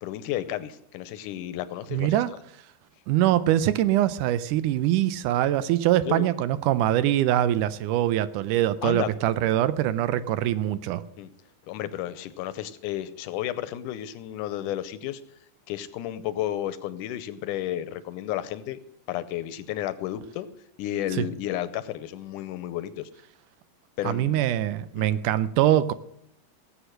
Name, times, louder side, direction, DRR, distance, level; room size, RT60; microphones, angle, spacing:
voice 1, 0.0-2.2 6.1-6.3 8.8-9.1 11.2-11.3 11.7-15.2 15.7-18.8 19.1-20.5 20.8-23.1 24.0-24.4 25.0-25.1, left 12 dB, 80° left, 14 dB, 2.2 m, -32 dB
voice 2, 1.9-2.3 3.1-11.0 21.2-21.3 24.0-25.9, right 13 dB, 80° right, 15 dB, 2.1 m, -23 dB
18.0 x 8.1 x 6.4 m, 0.71 s
omnidirectional pair, 3.8 m